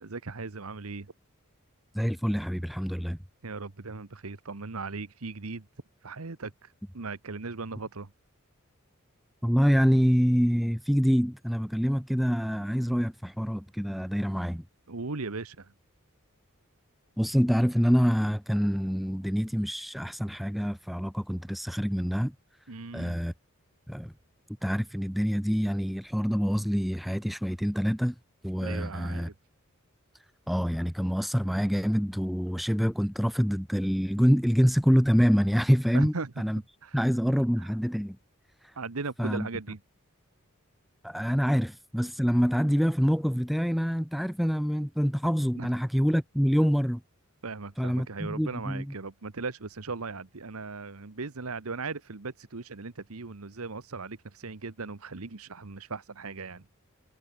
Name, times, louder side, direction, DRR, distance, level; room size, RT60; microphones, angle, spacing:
voice 1, 0.0-1.1 3.4-5.6 6.0-8.1 14.9-15.7 22.7-23.2 28.6-29.3 35.9-36.3 36.8-37.0 37.6-37.7 38.7-39.8 45.6-45.7 47.4-56.6, right 4 dB, 90° right, 1.2 m, -38 dB
voice 2, 1.9-3.2 9.4-14.6 17.2-22.3 22.9-23.3 23.9-24.1 24.6-28.2 28.4-29.3 30.5-36.6 36.9-38.2 38.6-38.8 39.2-39.5 41.0-47.0 47.8-48.9, equal, ahead, 0.6 m, -26 dB
head